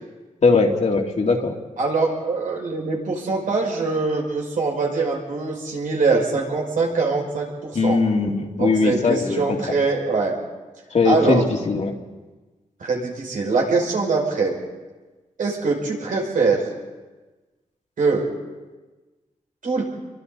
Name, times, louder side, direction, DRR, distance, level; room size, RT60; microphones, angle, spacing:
voice 1, 0.4-1.6 7.7-9.6 10.9-11.9, left 4 dB, 55° left, 1 dB, 2.6 m, -20 dB
voice 2, 1.8-8.0 8.6-10.3 11.0-11.4 12.8-14.6 15.4-16.6 18.0-18.3 19.6-19.8, right 4 dB, 85° right, -1 dB, 5.9 m, -23 dB
28.5 x 24.0 x 4.1 m, 1.2 s
wide cardioid pair, 95°, 13 cm